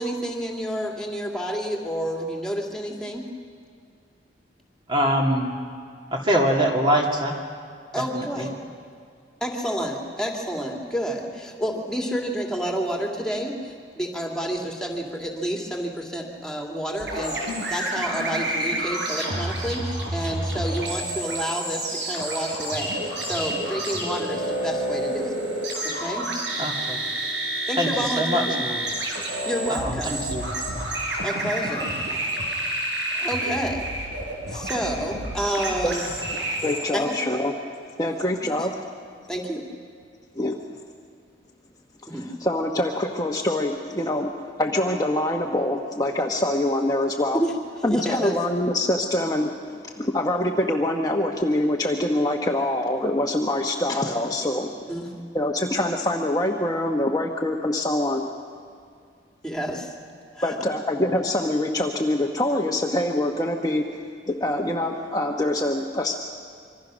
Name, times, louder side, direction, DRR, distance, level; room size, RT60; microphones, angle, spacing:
voice 1, 0.0-3.3 7.9-8.5 9.4-25.3 25.8-26.3 27.7-28.6 29.4-30.2 31.2-31.9 33.1-33.9 34.5-36.0 36.9-37.1 38.5-38.7 39.3-39.6 42.1-42.3 47.3-47.5 47.9-48.3 54.9-55.1 59.4-59.9 60.4-60.6, equal, 5° left, 1 dB, 2.6 m, -29 dB
voice 2, 4.9-5.5 6.1-7.4 8.1-8.5 26.6-27.0 27.8-28.9 29.7-30.4, equal, 25° right, 0 dB, 2.6 m, -24 dB
sound 1, 17.0-36.8, right 1 dB, 90° right, 5.5 m, -29 dB
voice 3, 36.6-37.5 38.0-38.7 40.3-40.6 42.1-44.3 44.6-47.4 47.8-54.7 55.3-58.3 60.4-63.8 64.3-66.1, left 1 dB, 20° left, 1 dB, 1.2 m, -24 dB
26.0 x 24.0 x 6.3 m, 2.3 s
head